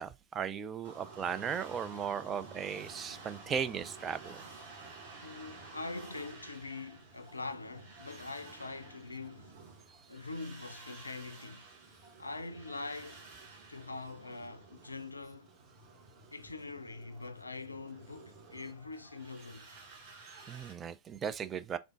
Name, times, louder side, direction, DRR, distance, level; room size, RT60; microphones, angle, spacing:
voice 1, 0.0-4.4 20.5-21.8, right 7 dB, 25° right, 0.4 m, -37 dB
sound 1, 0.8-20.7, right 3 dB, 50° right, 1.9 m, -52 dB
voice 2, 5.2-9.6 10.1-11.6 12.2-13.2 13.7-15.5 16.3-19.7, left 3 dB, 80° left, 0.4 m, -43 dB
3.6 x 3.5 x 2.4 m
figure-of-eight pair, 90°, 0 cm